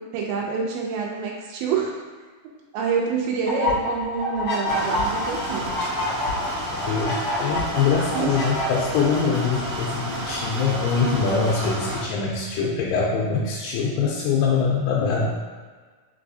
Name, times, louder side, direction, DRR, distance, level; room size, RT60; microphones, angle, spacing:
voice 1, 0.1-1.9 2.7-5.7 8.1-8.4, right 5 dB, 90° right, -2 dB, 2.4 m, -26 dB
sound 1, 3.5-8.7, left 1 dB, 50° left, 1.3 m, -27 dB
sound 2, 4.6-12.0, right 1 dB, 45° right, 1.8 m, -31 dB
voice 2, 6.9-15.3, left 5 dB, 85° left, -4 dB, 2.3 m, -23 dB
5.4 x 3.4 x 2.6 m, 1.5 s
omnidirectional pair, 4.0 m